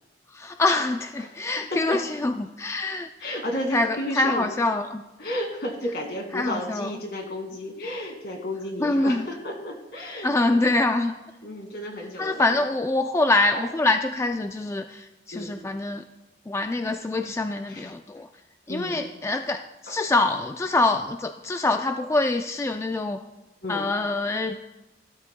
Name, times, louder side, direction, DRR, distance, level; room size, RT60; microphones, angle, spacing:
voice 1, 0.3-3.1 3.7-5.0 6.3-7.0 8.8-9.3 10.2-11.2 12.2-16.0 16.5-18.3 18.7-23.2 23.7-24.6, left 2 dB, 15° left, 6 dB, 0.3 m, -25 dB
voice 2, 1.7-2.0 3.2-4.5 5.2-10.7 11.4-12.4 13.5-13.7 15.3-15.6 17.7-17.9 18.7-19.1 19.9-20.0 23.6-23.9, left 1 dB, 65° left, 3 dB, 2.1 m, -32 dB
16.0 x 13.0 x 2.2 m, 1.0 s
head